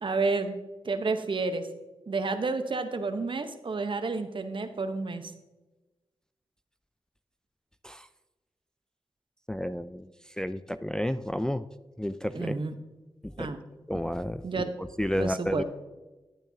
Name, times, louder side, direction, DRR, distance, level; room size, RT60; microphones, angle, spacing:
voice 1, 0.0-0.6 0.8-1.7 2.1-5.3 12.3-12.8 13.4-13.6 14.4-14.7 15.2-15.6, right 3 dB, 55° right, 8 dB, 0.9 m, -30 dB
voice 2, 9.5-11.7 12.0-12.6 13.2-14.4 14.8-15.6, equal, 5° left, 11 dB, 0.4 m, -32 dB
11.0 x 8.9 x 2.8 m, 1.1 s
cardioid pair, 50°, 10 cm